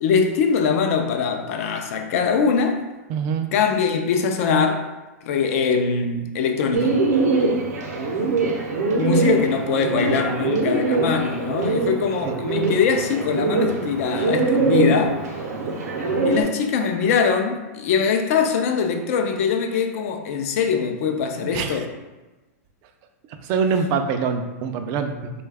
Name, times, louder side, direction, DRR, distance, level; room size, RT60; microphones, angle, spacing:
voice 1, 0.0-2.8 3.5-4.9 5.2-7.0 8.9-15.2 16.2-21.9, left 5 dB, 60° left, 5 dB, 0.4 m, -22 dB
voice 2, 3.1-3.5 12.2-12.3 21.4-21.9 23.4-25.3, right 5 dB, 40° right, 7 dB, 0.4 m, -24 dB
Bird, 6.7-16.4, right 3 dB, 75° right, 0.7 m, -23 dB
3.1 x 2.3 x 3.4 m, 1.1 s
hypercardioid pair, 130°, 9 cm